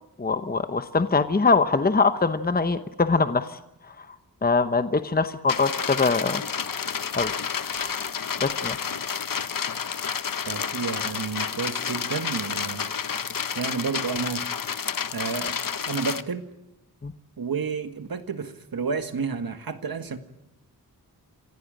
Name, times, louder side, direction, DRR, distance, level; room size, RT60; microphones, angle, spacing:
voice 1, 0.2-3.5 4.4-6.4 7.1-7.3 7.7-7.9 8.4-8.8 17.0-17.1, left 4 dB, 25° left, 10 dB, 0.9 m, -23 dB
sound 1, 5.5-16.2, left 7 dB, 60° left, 1.0 m, -30 dB
voice 2, 10.5-12.9 13.6-14.5 15.1-15.6 15.9-16.5 17.4-20.2, right 5 dB, 70° right, 9 dB, 1.8 m, -30 dB
27.0 x 16.5 x 9.0 m, 0.91 s
wide cardioid pair, 105°, 37 cm